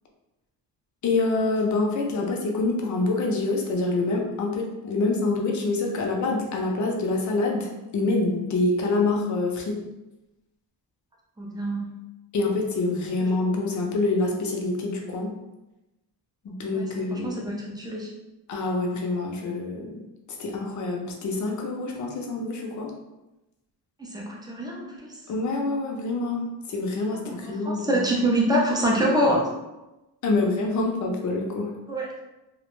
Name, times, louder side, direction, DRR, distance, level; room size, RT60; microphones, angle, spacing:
voice 1, 1.0-9.8 12.3-15.4 16.4-17.4 18.5-20.1 20.4-22.9 25.3-28.0 30.2-31.7, left 3 dB, 50° left, 0 dB, 0.5 m, -26 dB
voice 2, 11.4-12.0 16.7-18.1 24.0-25.2 27.1-29.5 31.9-32.1, right 1 dB, 10° right, -2 dB, 0.4 m, -26 dB
2.3 x 2.1 x 3.0 m, 0.99 s
wide cardioid pair, 150°, 40 cm